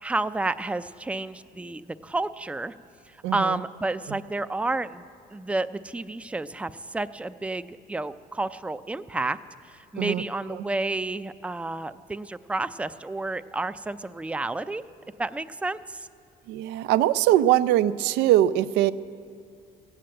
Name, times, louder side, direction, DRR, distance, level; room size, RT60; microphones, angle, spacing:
voice 1, 0.0-2.7 3.3-5.0 5.3-9.4 9.9-14.8 15.2-16.1, right 2 dB, 5° right, 11 dB, 0.4 m, -30 dB
voice 2, 3.2-3.6 4.1-4.2 10.0-10.2 10.5-10.6 16.5-18.9, right 13 dB, 90° right, 14 dB, 0.4 m, -22 dB
16.0 x 9.3 x 7.7 m, 2.3 s
cardioid pair, 110°, 17 cm